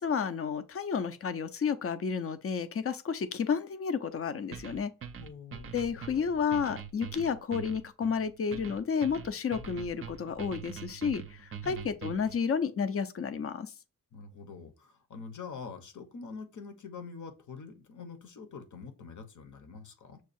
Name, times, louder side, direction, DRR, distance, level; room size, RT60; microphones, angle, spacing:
voice 1, 0.0-4.9 5.7-11.2 11.6-13.7, left 6 dB, 45° left, 0.5 m, -31 dB
sound 1, 4.5-12.4, right 7 dB, 40° right, 0.5 m, -43 dB
voice 2, 5.2-6.4 9.5-9.8 11.6-12.0 14.1-20.2, left 5 dB, 60° left, 1.0 m, -45 dB
6.3 x 2.3 x 2.6 m
wide cardioid pair, 150°, 34 cm